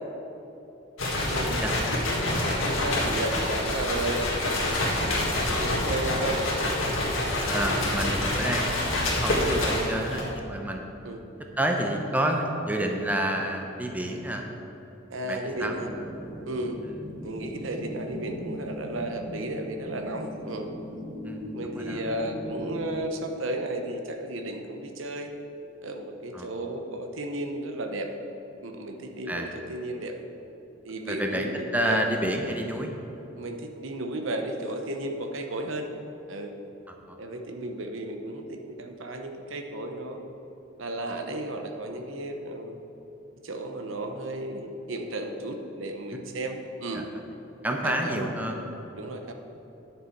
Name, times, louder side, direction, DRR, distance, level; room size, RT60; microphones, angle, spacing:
sound 1, 1.0-10.3, left 1 dB, 80° left, 1.8 m, -27 dB
voice 1, 1.3-1.6 2.7-4.3 5.5-6.4 11.0-11.2 15.1-15.9 16.5-16.8 17.2-20.7 21.5-25.3 25.8-28.1 28.6-30.2 30.8-32.0 33.4-35.9 36.3-36.5 37.2-40.2 40.8-42.8 43.4-47.1 47.7-48.3 48.9-49.3, right 1 dB, 75° right, 4 dB, 0.8 m, -34 dB
voice 2, 5.1-5.5 7.5-8.9 9.2-10.9 11.6-14.4 15.2-15.7 16.8-17.0 21.2-22.1 26.3-26.5 29.3-29.7 31.1-32.9 36.9-37.2 46.9-47.0 47.6-48.7, right 1 dB, 10° right, 2 dB, 0.7 m, -29 dB
sound 2, 15.5-23.0, equal, 5° left, 1.3 m, -39 dB
9.7 x 6.6 x 4.6 m, 3.0 s
head